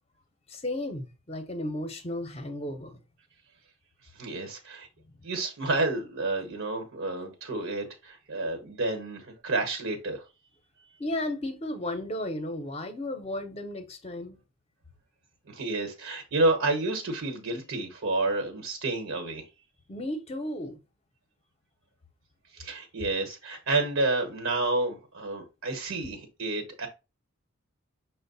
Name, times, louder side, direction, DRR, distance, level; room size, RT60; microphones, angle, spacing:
voice 1, 0.5-3.0 11.0-14.4 19.9-20.8, left 1 dB, 30° left, 0.7 m, -34 dB
voice 2, 4.1-4.9 5.2-10.2 15.5-19.5 22.5-26.9, right 2 dB, 75° right, 1.1 m, -30 dB
6.1 x 2.1 x 3.9 m
head